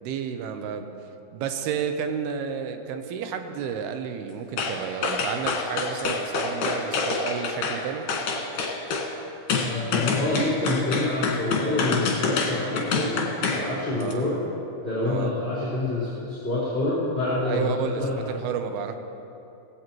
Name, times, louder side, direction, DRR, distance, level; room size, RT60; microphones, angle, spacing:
voice 1, 0.0-1.0 1.3-8.1 14.0-14.3 15.0-15.3 17.5-18.9, right 7 dB, 85° right, 7 dB, 2.8 m, -31 dB
sound 1, 4.6-4.8 5.0-7.8 8.1-9.1 9.5-13.7 14.0-14.1, left 4 dB, 65° left, 3.1 m, -26 dB
voice 2, 9.6-13.2 13.5-14.4 14.8-18.2, left 2 dB, 15° left, -11 dB, 3.9 m, -27 dB
19.0 x 16.5 x 3.1 m, 2.9 s
omnidirectional pair, 4.5 m